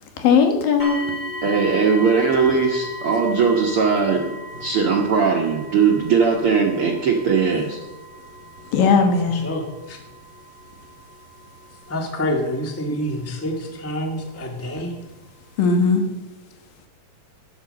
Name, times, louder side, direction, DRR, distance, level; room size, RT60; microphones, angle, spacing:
voice 1, 0.2-1.0 8.7-9.5 15.6-16.0, left 5 dB, 75° left, 5 dB, 3.1 m, -17 dB
sound 1, 0.8-13.7 14.5-14.6 15.2-15.3, left 1 dB, 30° left, 2.4 m, -37 dB
voice 2, 1.4-4.3 4.6-7.8, right 5 dB, 65° right, 0 dB, 1.4 m, -19 dB
voice 3, 9.2-10.0 11.9-14.9, equal, 15° left, 2 dB, 0.5 m, -27 dB
12.5 x 9.5 x 6.5 m, 1.1 s
omnidirectional pair, 4.0 m